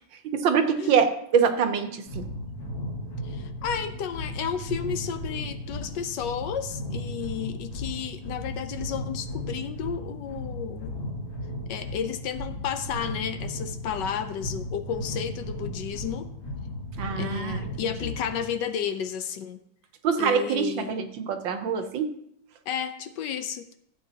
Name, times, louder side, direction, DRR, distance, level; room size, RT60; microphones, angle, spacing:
voice 1, 0.2-2.2 17.0-17.9 20.0-22.2, right 6 dB, 85° right, 7 dB, 1.7 m, -25 dB
sound 1, 2.1-18.5, left 1 dB, 55° left, 2.6 m, -35 dB
voice 2, 3.2-10.9 11.7-16.3 17.2-19.6 20.2-20.9 22.7-23.8, left 8 dB, 75° left, 9 dB, 1.3 m, -32 dB
15.0 x 8.2 x 2.9 m, 0.72 s
omnidirectional pair, 2.0 m